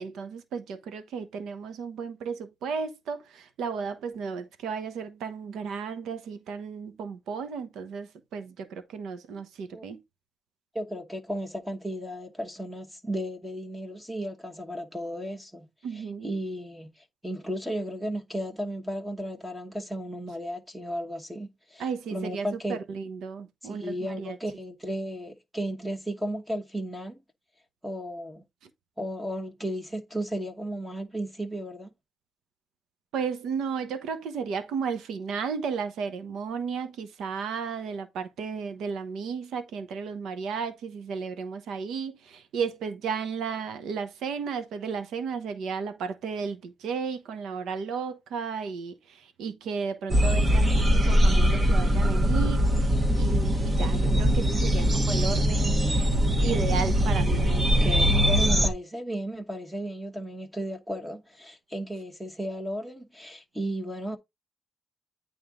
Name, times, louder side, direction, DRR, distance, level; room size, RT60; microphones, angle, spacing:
voice 1, 0.0-10.0 15.8-16.4 21.8-24.4 33.1-56.1 56.4-57.5, right 6 dB, 80° right, 1.0 m, -34 dB
voice 2, 10.7-15.7 15.9-22.8 23.6-27.2 27.8-28.4 29.0-31.9 57.4-64.2, equal, 10° right, 1.2 m, -34 dB
sound 1, 50.1-58.7, equal, 30° right, 1.2 m, -22 dB
8.8 x 3.8 x 3.7 m
cardioid pair, 90°, 0 cm